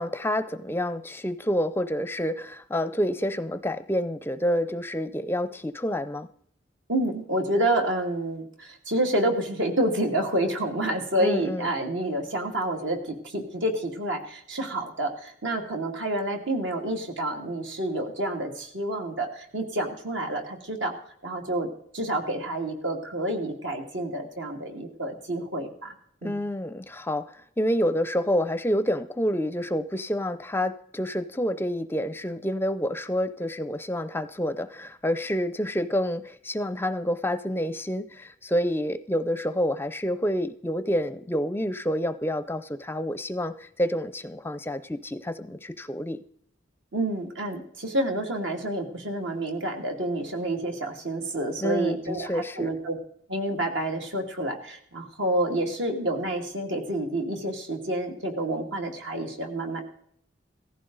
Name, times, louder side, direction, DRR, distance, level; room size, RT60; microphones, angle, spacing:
voice 1, 0.0-6.3 11.2-11.7 26.2-46.2 51.6-52.7, equal, 10° left, 13 dB, 0.5 m, -28 dB
voice 2, 6.9-20.9 21.2-21.7 21.9-25.9 26.2-26.4 46.9-53.0 53.3-59.8, right 1 dB, 75° right, 3 dB, 2.4 m, -28 dB
17.0 x 15.0 x 4.0 m, 0.66 s
head